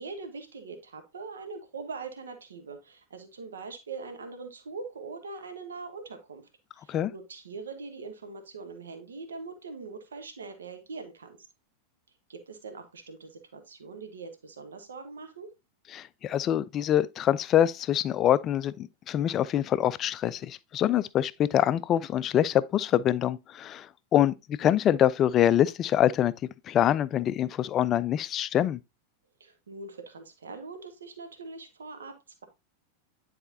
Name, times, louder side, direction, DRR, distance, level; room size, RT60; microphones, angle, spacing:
voice 1, 0.0-6.5 6.8-11.4 12.3-15.5 29.4-32.4, right 4 dB, 70° right, 1.0 m, -42 dB
voice 2, 15.9-26.3 26.7-28.8, left 11 dB, 30° left, 0.3 m, -25 dB
9.9 x 4.2 x 2.7 m
figure-of-eight pair, 90°, 0 cm